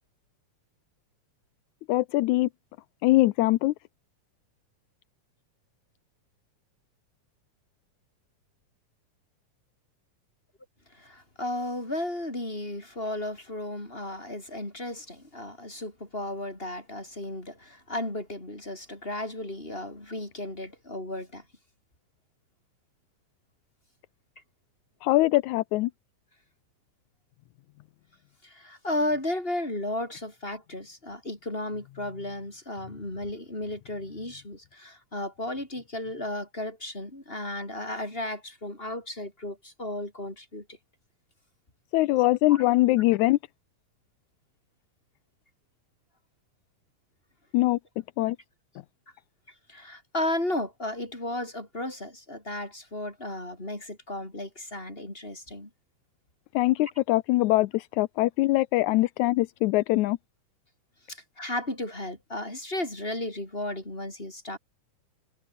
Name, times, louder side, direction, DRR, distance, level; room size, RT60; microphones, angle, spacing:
voice 1, 1.9-2.5 3.0-3.7 25.0-25.9 41.9-43.4 47.5-47.8 48.2-48.4 56.5-60.2, left 18 dB, 80° left, 1.8 m, -22 dB
voice 2, 10.9-21.4 28.4-40.8 42.2-42.7 49.7-55.7 56.8-56.9 61.1-64.6, left 1 dB, 15° left, 5.4 m, -34 dB
omnidirectional pair, 3.8 m